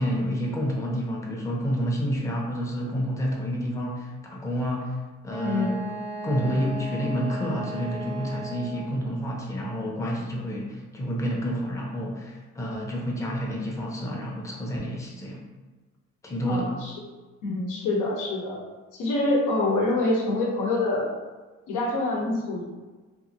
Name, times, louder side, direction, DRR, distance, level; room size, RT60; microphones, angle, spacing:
voice 1, 0.0-5.0 5.2-5.8 6.2-15.4 16.2-16.7, equal, 10° left, -2 dB, 0.6 m, -29 dB
Wind instrument woodwind instrument, 5.3-9.0, right 1 dB, 60° right, 0.7 m, -36 dB
voice 2, 5.4-5.7 16.5-17.0 17.4-18.6 18.9-21.1 21.7-22.6, left 2 dB, 85° left, -3 dB, 0.8 m, -26 dB
2.8 x 2.5 x 2.5 m, 1.3 s
cardioid pair, 90°, 30 cm